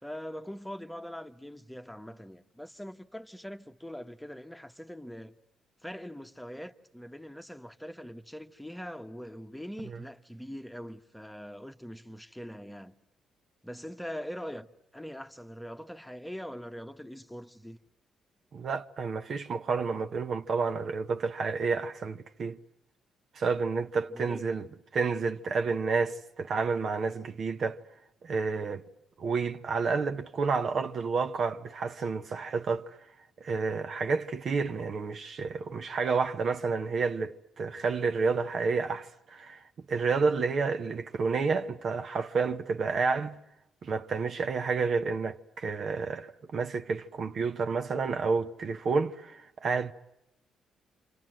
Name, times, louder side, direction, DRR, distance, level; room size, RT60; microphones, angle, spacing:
voice 1, 0.0-5.3 5.8-12.9 13.6-17.8 24.1-24.4, equal, 5° left, 1.3 m, -42 dB
voice 2, 18.5-22.6 23.3-24.7 24.9-27.8 28.2-28.8 29.2-33.0 33.4-43.4 43.8-49.9, right 4 dB, 55° right, 1.2 m, -30 dB
29.0 x 26.0 x 7.7 m
cardioid pair, 90°, 0 cm